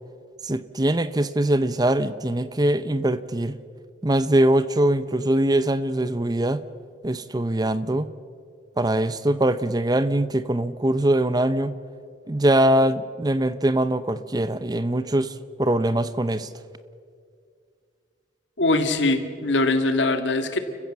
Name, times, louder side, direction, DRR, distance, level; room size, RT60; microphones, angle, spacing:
voice 1, 0.4-3.6 4.0-6.6 7.0-8.1 8.8-11.7 12.3-16.5, right 1 dB, 20° right, 14 dB, 0.6 m, -22 dB
voice 2, 18.6-20.6, left 2 dB, 75° left, 7 dB, 2.0 m, -22 dB
30.0 x 15.5 x 7.4 m, 2.2 s
head